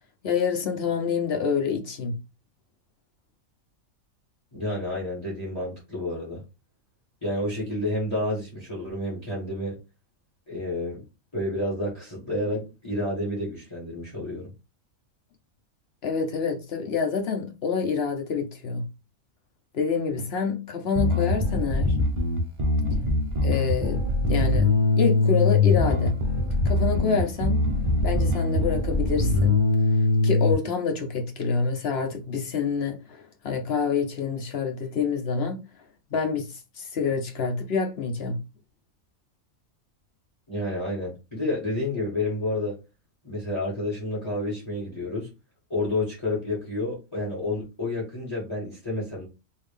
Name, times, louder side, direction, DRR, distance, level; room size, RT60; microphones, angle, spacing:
voice 1, 0.2-2.1 16.0-18.8 19.7-22.0 23.4-26.1 26.6-27.7 28.0-29.6 30.2-35.7 36.1-38.4, left 5 dB, 50° left, 0.9 m, -27 dB
voice 2, 4.5-6.4 7.2-9.8 10.5-11.0 11.3-14.5 40.5-42.8 43.2-45.3 45.7-49.3, left 1 dB, 20° left, 1.8 m, -30 dB
Bass guitar, 21.0-30.5, left 2 dB, 35° right, 0.5 m, -22 dB
3.7 x 2.7 x 3.4 m
omnidirectional pair, 1.5 m